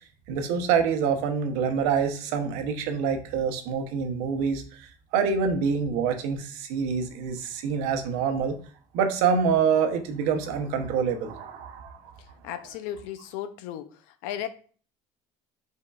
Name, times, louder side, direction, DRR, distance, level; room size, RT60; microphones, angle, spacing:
voice 1, 0.3-8.6 8.9-12.1, right 6 dB, 80° right, 6 dB, 0.8 m, -26 dB
voice 2, 12.2-14.5, left 11 dB, 80° left, 10 dB, 0.5 m, -36 dB
5.3 x 3.6 x 2.3 m, 0.41 s
cardioid pair, 175°, 13 cm